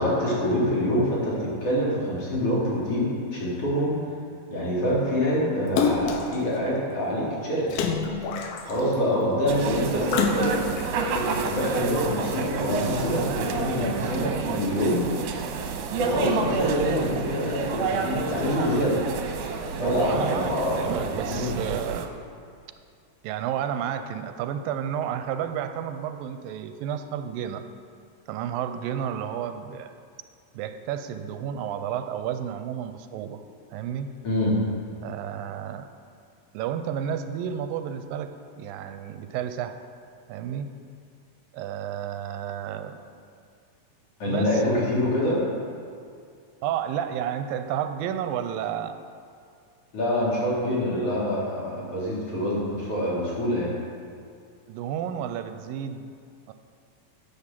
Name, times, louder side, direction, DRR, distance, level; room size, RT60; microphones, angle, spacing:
voice 1, 0.0-4.0 4.5-7.7 8.6-10.6 10.9-15.0 16.0-19.0 19.8-21.5 34.2-34.5 44.2-45.4 49.9-53.7, equal, 45° left, -7 dB, 3.8 m, -26 dB
Splash splatter, 5.8-6.4 7.7-8.9 10.1-10.9 11.5-11.6, left 5 dB, 85° left, 2.6 m, -26 dB
sound 1, 9.5-22.1, right 4 dB, 70° right, 2.2 m, -29 dB
voice 2, 19.8-22.1 23.2-27.6 28.3-29.9 30.5-33.4 33.7-34.1 35.0-35.9 36.5-39.8 40.3-40.7 41.5-43.0 44.3-44.6 46.6-49.0 54.7-56.1 56.5-56.6, right 9 dB, 85° right, 9 dB, 2.3 m, -31 dB
10.5 x 8.5 x 7.4 m, 2.3 s
omnidirectional pair, 4.1 m